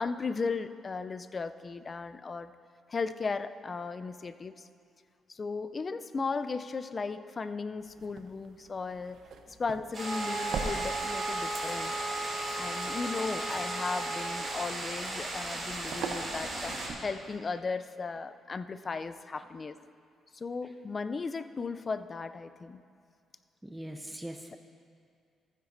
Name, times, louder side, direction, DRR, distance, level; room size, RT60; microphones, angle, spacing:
voice 1, 0.0-2.5 2.9-4.7 5.3-9.2 9.6-11.9 12.6-19.8 20.3-22.8, left 4 dB, 35° left, 12 dB, 0.4 m, -36 dB
sound 1, 7.8-17.4, right 5 dB, 70° right, 0.8 m, -44 dB
sound 2, 9.9-16.9, right 2 dB, 40° right, 2.5 m, -37 dB
sound 3, 10.0-14.7, right 2 dB, 70° left, 2.2 m, -37 dB
voice 2, 23.6-24.6, right 1 dB, 5° right, 3 dB, 0.7 m, -41 dB
15.0 x 9.7 x 2.6 m, 2.3 s
cardioid pair, 90°, 0 cm